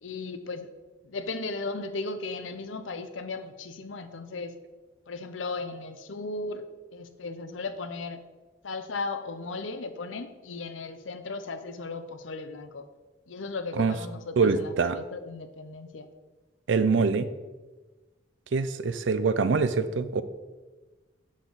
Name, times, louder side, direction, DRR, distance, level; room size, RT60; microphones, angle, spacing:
voice 1, 0.0-0.7 1.0-4.5 5.1-6.6 6.9-8.2 8.6-12.8 13.3-16.1, left 3 dB, 85° left, 10 dB, 0.7 m, -36 dB
voice 2, 14.4-15.0 16.7-17.3 18.5-20.2, right 4 dB, 70° right, 13 dB, 0.5 m, -24 dB
7.3 x 6.4 x 3.9 m, 1.2 s
head